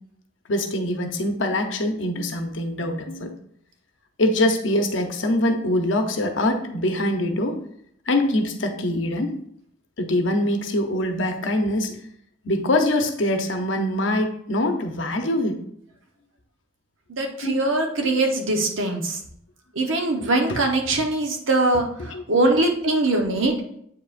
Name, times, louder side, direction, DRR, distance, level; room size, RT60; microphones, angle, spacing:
voice 1, 0.5-3.3 4.2-7.6 8.1-9.3 10.0-12.0 12.4-15.6 17.4-17.5 18.0-18.1 20.5-20.6 22.1-22.2, left 1 dB, 70° left, 5 dB, 0.9 m, -23 dB
voice 2, 17.1-19.2 19.7-23.5, right 2 dB, 85° right, 3 dB, 1.1 m, -22 dB
8.1 x 4.8 x 2.5 m, 0.69 s
head